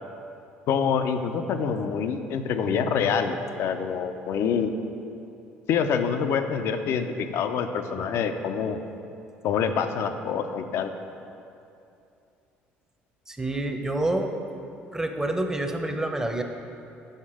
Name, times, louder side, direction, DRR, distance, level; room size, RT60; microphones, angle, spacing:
voice 1, 0.7-4.7 5.7-8.8 9.4-10.9, left 6 dB, 65° left, 8 dB, 0.5 m, -26 dB
voice 2, 13.3-14.3 14.9-16.4, right 1 dB, 10° right, 5 dB, 0.7 m, -27 dB
6.5 x 5.3 x 4.9 m, 2.7 s
supercardioid pair, 70°, 5 cm